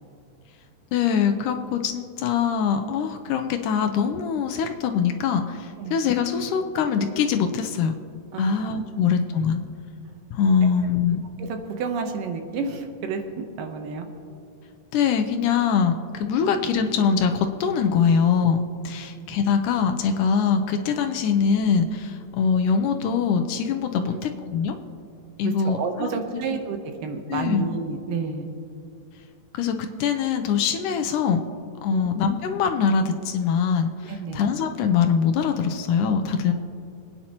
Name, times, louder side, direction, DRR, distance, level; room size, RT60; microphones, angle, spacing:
voice 1, 0.9-7.9 8.4-9.6 10.3-11.2 14.9-24.8 25.4-26.6 27.3-27.7 29.5-31.4 31.8-36.5, left 6 dB, 80° left, 6 dB, 2.1 m, -23 dB
voice 2, 8.3-8.7 11.4-14.1 19.0-19.1 24.0-24.3 25.4-28.5 31.9-32.1 34.1-34.4, right 5 dB, 80° right, 5 dB, 2.6 m, -30 dB
25.5 x 9.7 x 2.9 m, 2.5 s
omnidirectional pair, 3.9 m